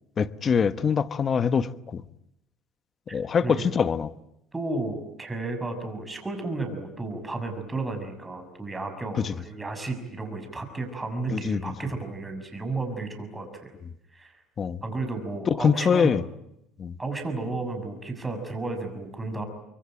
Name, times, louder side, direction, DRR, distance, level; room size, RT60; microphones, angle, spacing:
voice 1, 0.2-2.0 3.1-4.1 9.2-9.3 11.3-11.7 14.6-14.8 15.5-16.2 16.8-16.9, left 6 dB, 35° left, 1.2 m, -24 dB
voice 2, 3.1-3.7 4.5-13.7 14.1-14.3 14.8-16.2 17.0-19.5, right 3 dB, 10° right, 6.4 m, -33 dB
25.5 x 23.5 x 9.0 m
cardioid pair, 120°, 0 cm